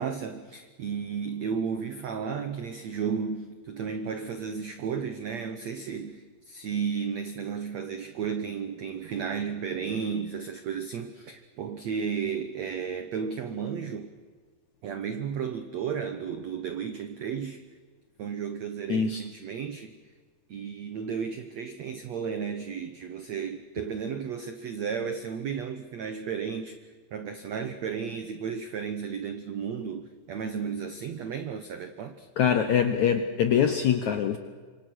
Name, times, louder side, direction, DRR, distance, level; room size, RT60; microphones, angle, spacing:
voice 1, 0.0-14.1 14.8-17.6 18.2-20.0 20.5-32.3, right 6 dB, 80° right, 1.5 m, -33 dB
voice 2, 18.9-19.3 32.4-34.4, left 8 dB, 70° left, 1.7 m, -24 dB
27.0 x 24.5 x 6.4 m
omnidirectional pair, 4.9 m